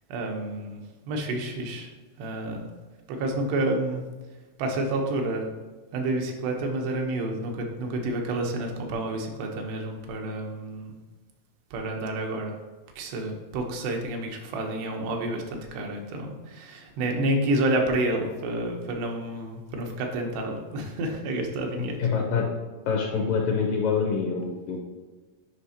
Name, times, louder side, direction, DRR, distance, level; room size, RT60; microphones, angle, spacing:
voice 1, 0.1-1.9 2.2-2.7 3.1-4.0 4.6-5.5 5.9-11.0 11.7-12.6 13.0-22.0, right 1 dB, 85° right, 2 dB, 3.1 m, -29 dB
voice 2, 22.0-22.5 22.9-24.8, left 5 dB, 75° left, -1 dB, 2.1 m, -25 dB
9.7 x 5.0 x 2.8 m, 1.2 s
omnidirectional pair, 4.7 m